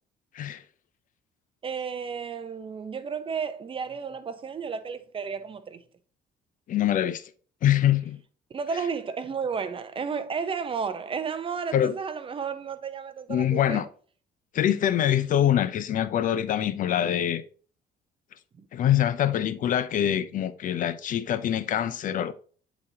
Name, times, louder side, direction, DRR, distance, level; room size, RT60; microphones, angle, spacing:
voice 1, 1.6-5.8 8.5-13.8 18.6-18.7, right 6 dB, 30° right, 0.7 m, -32 dB
voice 2, 6.7-7.3 7.6-8.2 11.7-11.9 13.3-13.9 14.5-17.4 18.7-22.3, left 11 dB, 50° left, 0.5 m, -24 dB
8.6 x 4.1 x 2.8 m
cardioid pair, 110°, 17 cm